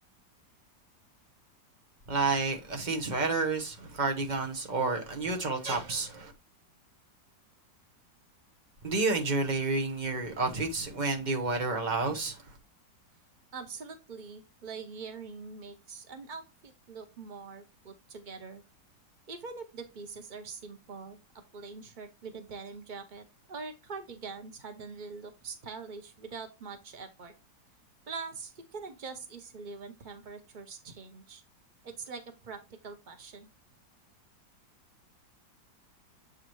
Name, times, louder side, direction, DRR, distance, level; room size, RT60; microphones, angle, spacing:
voice 1, 2.1-6.3 8.8-12.4, right 3 dB, 30° right, 0.9 m, -30 dB
voice 2, 13.5-18.6 19.3-21.2 21.5-27.3 28.1-31.4 31.8-33.5, right 4 dB, 85° right, 0.4 m, -43 dB
7.5 x 4.8 x 3.1 m
omnidirectional pair, 2.0 m